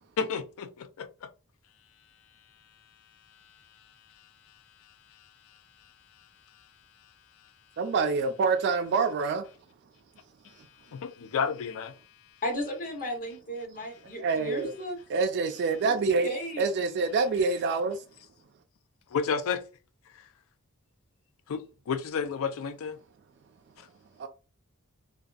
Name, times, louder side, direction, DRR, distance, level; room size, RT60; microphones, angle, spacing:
voice 1, 0.2-1.3 10.9-11.9 19.1-19.6 21.5-23.0 23.8-23.9, left 6 dB, 65° left, 0.4 m, -31 dB
voice 2, 7.8-9.5 14.1-14.7 15.1-16.3 16.6-18.0 24.2-24.3, right 4 dB, 50° right, 0.3 m, -26 dB
voice 3, 12.4-15.0 16.2-16.6, equal, 40° left, 0.9 m, -34 dB
2.6 x 2.2 x 2.4 m
head